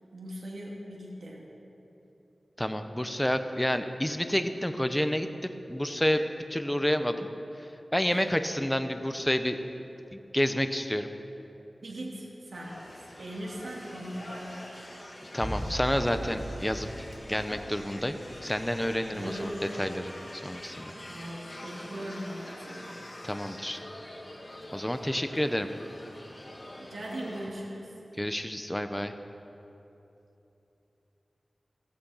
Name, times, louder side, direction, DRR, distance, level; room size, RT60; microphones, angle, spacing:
voice 1, 0.1-1.5 11.8-12.8 13.2-14.8 19.1-19.7 21.1-23.1 26.8-27.9, right 1 dB, 85° right, -3 dB, 2.6 m, -39 dB
voice 2, 2.6-6.2 6.5-7.3 7.9-9.6 10.1-11.1 15.3-16.9 17.3-19.5 19.8-20.9 23.2-23.8 24.7-25.7 28.2-29.1, equal, 10° left, 8 dB, 0.9 m, -29 dB
sound 1, 12.5-27.5, left 1 dB, 35° left, 2.5 m, -45 dB
sound 2, 15.4-19.6 19.9-20.0, equal, 15° right, 1.4 m, -40 dB
15.5 x 15.0 x 5.7 m, 3.0 s
wide cardioid pair, 85°, 0 cm